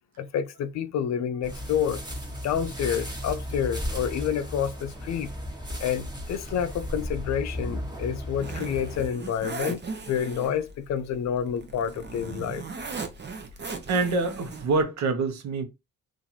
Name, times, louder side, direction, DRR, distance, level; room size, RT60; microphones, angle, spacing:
voice 1, 0.2-2.0 2.4-5.3 5.8-12.6, left 8 dB, 65° left, 0.6 m, -29 dB
sound 1, 1.4-9.1, equal, 15° right, 1.2 m, -35 dB
Zipper (clothing), 7.4-14.8, right 4 dB, 35° right, 0.8 m, -39 dB
voice 2, 13.9-15.6, right 3 dB, 65° right, 0.9 m, -25 dB
2.9 x 2.6 x 4.0 m
cardioid pair, 90°, 30 cm